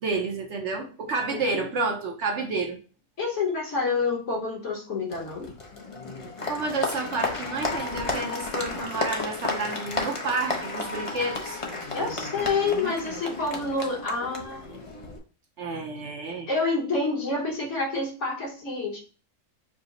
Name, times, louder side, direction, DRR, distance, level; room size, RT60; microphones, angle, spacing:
voice 1, 0.0-2.8 6.5-11.6 15.6-16.5, right 3 dB, 60° right, 1 dB, 0.9 m, -30 dB
voice 2, 1.3-1.7 3.2-5.5 11.9-14.8 16.5-19.0, left 3 dB, 60° left, -1 dB, 1.4 m, -28 dB
Applause, 5.1-15.2, left 3 dB, 45° left, 0.4 m, -33 dB
4.9 x 2.0 x 3.8 m, 0.37 s
omnidirectional pair, 1.5 m